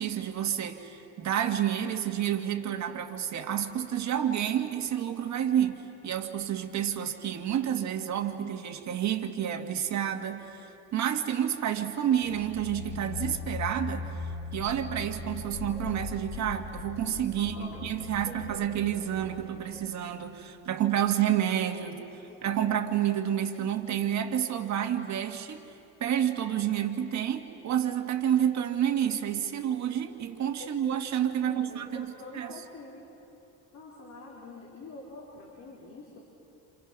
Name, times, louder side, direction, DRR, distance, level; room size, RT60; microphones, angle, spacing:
voice 1, 0.0-14.1 14.5-22.0 22.4-25.7 26.0-32.1 32.3-32.6, right 10 dB, 55° right, 5 dB, 1.8 m, -29 dB
sound 1, 12.1-20.7, left 4 dB, 90° left, 4.3 m, -40 dB
voice 2, 17.3-19.6 21.8-22.5 30.6-30.7 31.4-33.0 33.7-36.2, left 2 dB, 55° left, -3 dB, 4.1 m, -46 dB
28.5 x 27.5 x 6.1 m, 2.9 s
cardioid pair, 120°, 33 cm